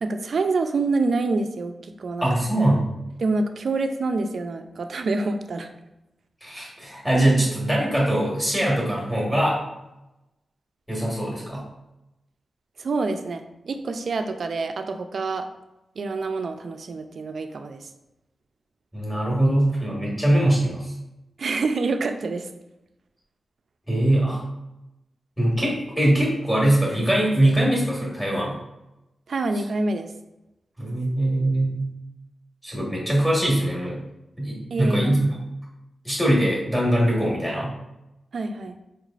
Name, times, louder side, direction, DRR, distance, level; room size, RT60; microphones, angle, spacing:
voice 1, 0.0-2.3 3.2-5.7 12.8-15.5 16.0-17.9 21.4-22.5 29.3-30.1 34.7-35.1 38.3-38.8, right 3 dB, 60° right, 7 dB, 0.4 m, -26 dB
voice 2, 2.2-2.9 6.4-9.6 10.9-11.6 18.9-20.8 23.9-24.4 25.4-28.6 30.8-31.8 32.6-34.0 34.4-35.4 36.0-37.7, right 1 dB, 5° left, -5 dB, 1.4 m, -22 dB
4.5 x 3.1 x 2.4 m, 0.92 s
wide cardioid pair, 125°, 0 cm